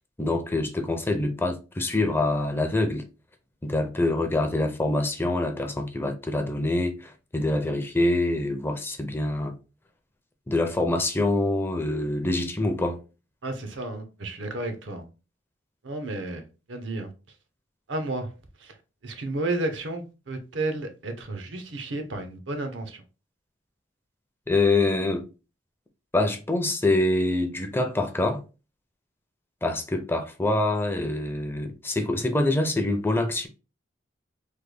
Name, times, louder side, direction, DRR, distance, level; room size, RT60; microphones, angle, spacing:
voice 1, 0.2-3.0 3.6-9.6 10.5-13.0 24.5-25.2 26.1-28.4 29.6-33.5, left 2 dB, 10° left, 0.4 m, -25 dB
voice 2, 13.4-15.0 15.8-17.1 17.9-18.3 18.6-18.7 19.0-23.0, right 2 dB, 80° right, 0.7 m, -32 dB
3.3 x 2.2 x 3.3 m
head